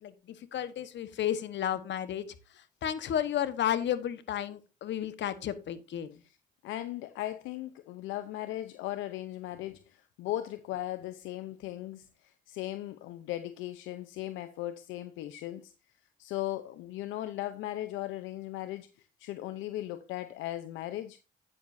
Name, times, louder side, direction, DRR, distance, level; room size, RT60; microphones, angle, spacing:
voice 1, 0.0-2.3 2.8-6.2, left 10 dB, 70° left, 1.2 m, -32 dB
voice 2, 6.6-15.7 16.2-21.2, left 14 dB, 90° left, 0.7 m, -38 dB
10.5 x 9.3 x 2.6 m
supercardioid pair, 60°, 19 cm